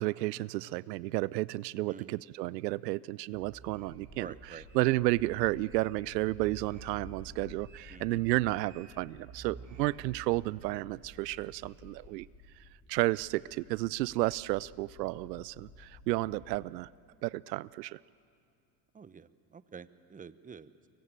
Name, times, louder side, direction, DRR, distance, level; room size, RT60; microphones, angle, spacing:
voice 1, 0.0-4.3 4.7-12.3 12.9-16.9 17.2-18.0, right 19 dB, 80° right, 21 dB, 0.5 m, -32 dB
voice 2, 1.9-2.2 4.1-4.7 7.9-8.2 18.9-20.9, right 6 dB, 15° right, 15 dB, 0.9 m, -49 dB
sound 1, 3.3-4.9 5.2-6.0 6.3-9.0 9.3-10.4, right 5 dB, 45° right, 4.0 m, -50 dB
sound 2, 3.8-16.7, left 4 dB, 40° left, 7.3 m, -55 dB
24.0 x 22.5 x 8.9 m, 2.4 s
hypercardioid pair, 85°, 48 cm